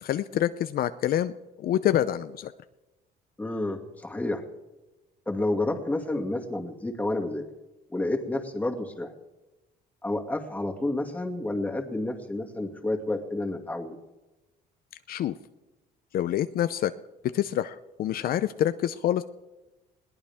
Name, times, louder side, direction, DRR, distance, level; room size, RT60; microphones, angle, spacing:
voice 1, 0.0-1.3 1.6-2.5 15.1-15.3 16.1-16.9 17.3-19.2, left 11 dB, 60° left, 12 dB, 0.7 m, -26 dB
voice 2, 3.4-4.4 5.3-7.4 7.9-9.1 10.0-14.0, left 2 dB, 10° left, 2 dB, 2.4 m, -30 dB
21.5 x 18.5 x 3.6 m, 1.1 s
cardioid pair, 110°, 17 cm